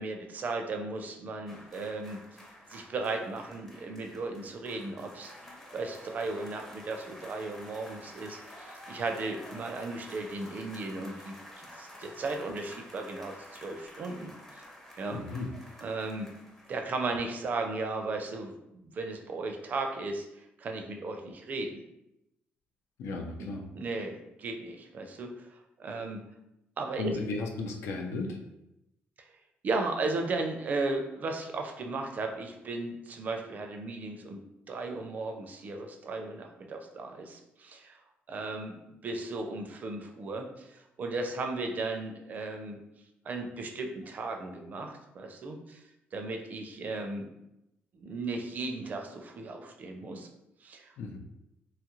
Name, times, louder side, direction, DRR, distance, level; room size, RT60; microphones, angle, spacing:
voice 1, 0.0-2.2 2.7-5.3 5.7-14.6 15.0-15.2 15.8-16.3 16.7-18.5 18.8-20.3 20.6-21.8 23.4-23.5 23.7-26.2 26.8-27.1 29.6-34.4 34.7-38.0 38.3-38.8 39.0-42.8 43.3-45.8 46.1-47.3 47.9-50.3 50.6-50.9, right 3 dB, 40° right, 4 dB, 0.4 m, -36 dB
sound 1, 1.5-17.8 18.0-18.2, left 1 dB, 10° left, 0.5 m, -50 dB
voice 2, 15.1-15.5 23.0-23.6 27.0-28.4 51.0-51.2, left 3 dB, 85° left, 3 dB, 0.5 m, -35 dB
2.9 x 2.4 x 3.0 m, 0.87 s
cardioid pair, 140°, 4 cm